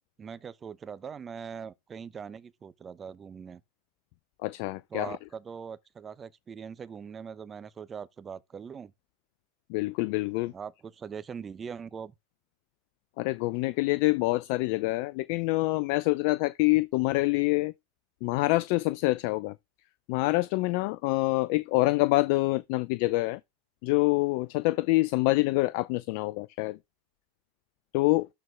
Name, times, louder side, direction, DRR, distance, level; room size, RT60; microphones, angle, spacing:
voice 1, 0.0-3.6 4.9-8.9 10.5-12.1, right 6 dB, 25° right, 0.9 m, -41 dB
voice 2, 4.4-5.1 9.7-10.5 13.2-17.7 18.2-19.5 20.1-23.4 23.8-26.8 27.9-28.3, left 21 dB, 60° left, 0.5 m, -26 dB
12.5 x 4.5 x 3.5 m
hypercardioid pair, 95°, 0 cm